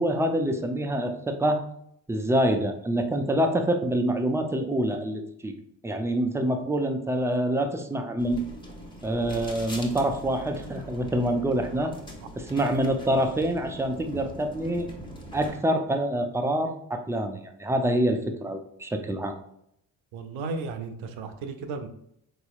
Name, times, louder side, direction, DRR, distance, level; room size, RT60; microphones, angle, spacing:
voice 1, 0.0-1.6 2.1-5.5 5.8-8.4 9.0-11.9 12.4-14.9 15.3-19.3, right 1 dB, 5° right, 5 dB, 0.3 m, -26 dB
sound 1, 8.2-15.6, right 1 dB, 10° left, 1.0 m, -42 dB
voice 2, 20.1-21.9, right 4 dB, 70° right, 7 dB, 0.7 m, -34 dB
4.0 x 2.9 x 2.3 m, 0.74 s
hypercardioid pair, 50°, 50 cm